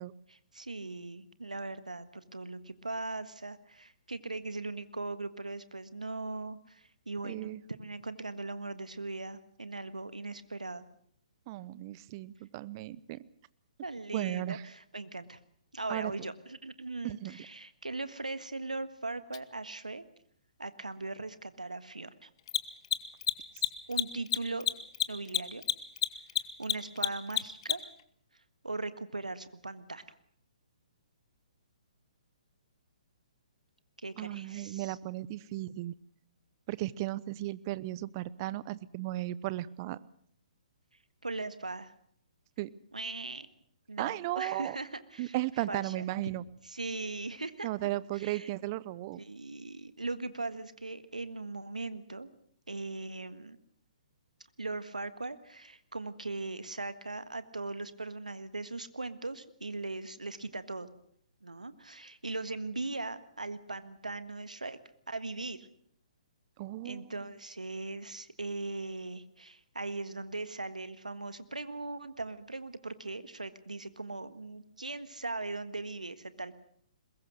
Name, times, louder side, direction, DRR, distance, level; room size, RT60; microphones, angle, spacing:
voice 1, 0.3-10.8 13.8-15.4 15.7-20.0 20.6-22.3 23.9-24.7 25.1-25.6 26.6-27.8 28.6-30.0 34.0-35.0 41.2-41.9 42.9-43.5 43.9-46.0 46.6-48.5 49.2-52.3 52.7-53.6 54.6-60.9 61.4-64.8 65.1-65.7 66.8-76.5, right 3 dB, 90° right, 12 dB, 1.6 m, -39 dB
voice 2, 7.2-7.6 11.5-13.3 14.1-14.6 15.9-16.1 17.0-17.4 34.2-35.9 36.7-40.0 42.6-42.7 44.0-44.8 45.2-46.4 47.6-49.2 66.6-67.1, right 16 dB, 35° right, 20 dB, 0.8 m, -35 dB
Mechanisms, 19.3-19.4 22.4-28.0, left 12 dB, 45° left, 1.3 m, -30 dB
22.0 x 21.0 x 6.5 m, 0.65 s
figure-of-eight pair, 130°, 4 cm